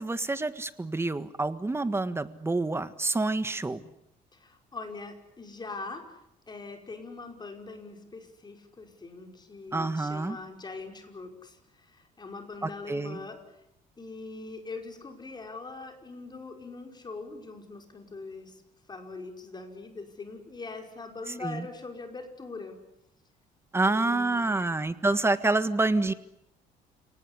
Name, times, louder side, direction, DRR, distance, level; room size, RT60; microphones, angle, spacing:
voice 1, 0.0-3.8 9.7-10.4 12.6-13.2 21.4-21.6 23.7-26.1, right 2 dB, 15° right, 12 dB, 1.5 m, -27 dB
voice 2, 4.3-6.2 6.5-13.4 14.0-18.6 18.9-22.8 23.9-24.8, left 3 dB, 25° left, 4 dB, 5.4 m, -42 dB
29.5 x 19.0 x 9.9 m, 0.84 s
cardioid pair, 110°, 17 cm